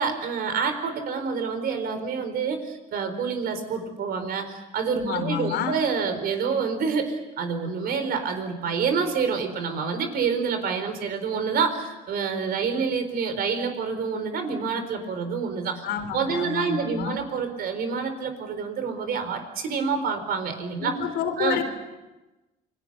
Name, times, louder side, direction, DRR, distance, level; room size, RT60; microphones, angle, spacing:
voice 1, 0.0-15.8 16.1-20.9 21.4-21.6, right 5 dB, 65° right, 8 dB, 4.3 m, -27 dB
voice 2, 5.0-5.8 15.8-17.2 20.8-21.6, left 8 dB, 80° left, 6 dB, 4.0 m, -29 dB
29.0 x 21.5 x 6.8 m, 1.1 s
cardioid pair, 110°, 17 cm